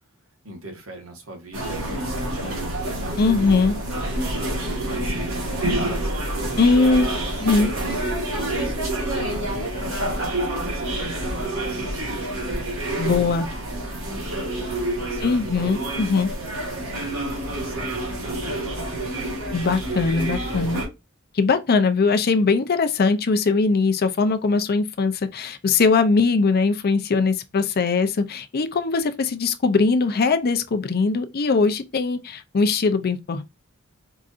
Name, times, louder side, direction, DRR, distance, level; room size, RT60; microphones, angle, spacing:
voice 1, 0.4-6.2 7.1-12.8 13.7-16.2 16.7-19.4, right 1 dB, 85° right, 1.3 m, -41 dB
sound 1, 1.5-20.9, right 1 dB, 70° right, 1.5 m, -28 dB
voice 2, 3.2-3.7 6.6-7.7 13.0-13.5 15.2-16.3 19.5-20.8 21.3-33.4, left 4 dB, 50° left, 0.5 m, -21 dB
4.7 x 2.6 x 2.4 m
head